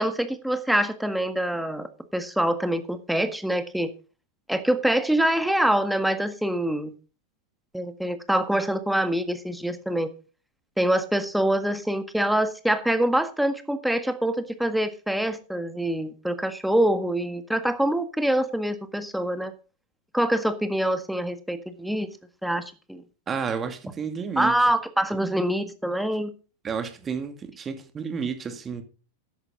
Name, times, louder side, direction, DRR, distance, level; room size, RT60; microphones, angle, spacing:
voice 1, 0.0-3.9 4.5-6.9 7.7-10.1 10.8-19.5 20.1-22.1 22.4-23.0 24.4-26.3, right 1 dB, ahead, 1.6 m, -25 dB
voice 2, 23.3-24.5 26.6-28.8, right 6 dB, 20° right, 2.4 m, -31 dB
14.0 x 11.0 x 3.9 m
figure-of-eight pair, 90°, 0 cm